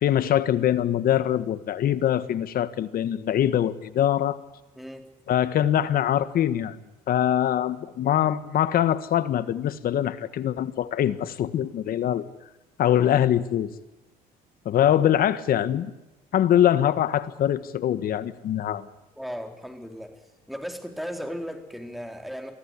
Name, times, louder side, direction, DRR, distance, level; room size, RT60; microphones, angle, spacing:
voice 1, 0.0-4.4 5.3-6.8 7.1-12.2 12.8-13.7 14.6-15.9 16.3-18.9, left 11 dB, 60° left, 13 dB, 1.7 m, -23 dB
voice 2, 4.8-5.1 19.2-20.1 20.5-22.5, equal, ahead, 5 dB, 4.0 m, -36 dB
23.5 x 15.0 x 9.9 m, 1.0 s
cardioid pair, 110°, 17 cm